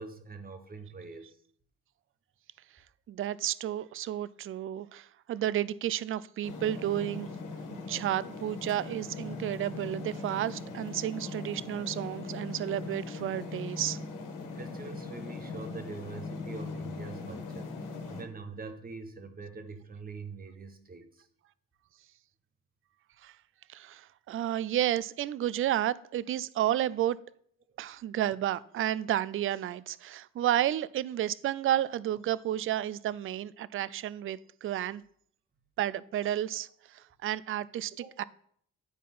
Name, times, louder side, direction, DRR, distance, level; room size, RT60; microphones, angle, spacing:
voice 1, 0.0-1.4 14.5-21.2 38.0-38.1, right 4 dB, 30° right, 1.2 m, -44 dB
voice 2, 3.1-7.3 7.9-14.0 23.2-23.3 23.7-27.2 27.8-35.0 35.8-37.9 38.2-38.3, right 12 dB, 45° right, 0.4 m, -31 dB
sound 1, 6.4-18.2, left 3 dB, 85° left, 1.5 m, -40 dB
9.5 x 4.2 x 5.5 m
cardioid pair, 90°, 30 cm